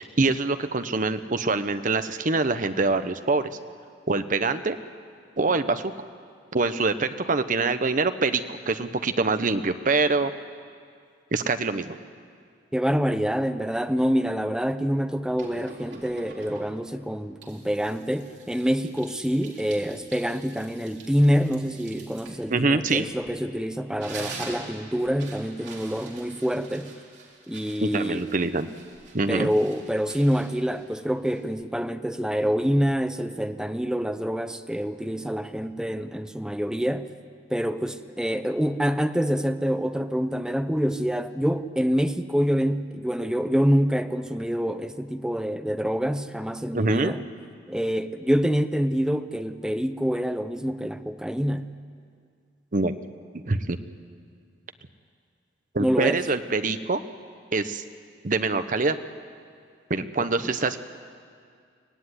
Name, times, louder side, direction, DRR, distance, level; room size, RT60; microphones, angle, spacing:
voice 1, 0.2-3.5 4.1-4.8 5.4-5.9 6.5-10.3 11.3-12.0 22.5-23.1 27.8-28.7 29.1-29.5 46.7-47.1 52.7-52.9 53.3-53.8 55.7-57.0 57.5-57.8 58.2-59.0 59.9-60.8, right 3 dB, 45° right, 0.9 m, -24 dB
voice 2, 12.7-26.9 27.5-28.2 29.3-37.1 37.5-47.2 47.7-51.7 55.8-56.2 60.4-60.5, equal, 5° right, 0.7 m, -26 dB
sound 1, 15.4-16.9 17.4-23.5 23.8-31.6, right 3 dB, 70° right, 3.9 m, -45 dB
24.0 x 17.5 x 9.8 m
head